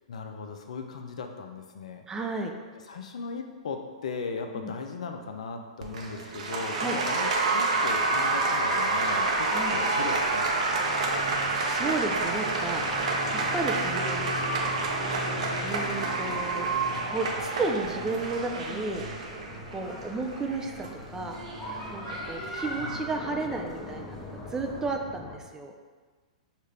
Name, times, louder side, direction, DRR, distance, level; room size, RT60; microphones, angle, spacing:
voice 1, 0.1-2.1 2.9-10.8 22.8-23.1, left 5 dB, 70° left, 5 dB, 0.5 m, -38 dB
voice 2, 2.1-2.5 4.5-4.7 6.7-7.0 9.5-9.8 11.6-14.3 15.6-16.7 17.1-19.1 19.7-21.4 21.9-25.7, right 3 dB, 15° right, 3 dB, 0.4 m, -33 dB
Applause, 5.8-22.9, right 3 dB, 70° right, 0.7 m, -29 dB
sound 1, 6.7-25.4, left 2 dB, 25° left, 0.6 m, -43 dB
sound 2, 9.1-24.9, equal, 10° left, 1.0 m, -43 dB
5.3 x 2.5 x 3.3 m, 1.5 s
hypercardioid pair, 115°, 4 cm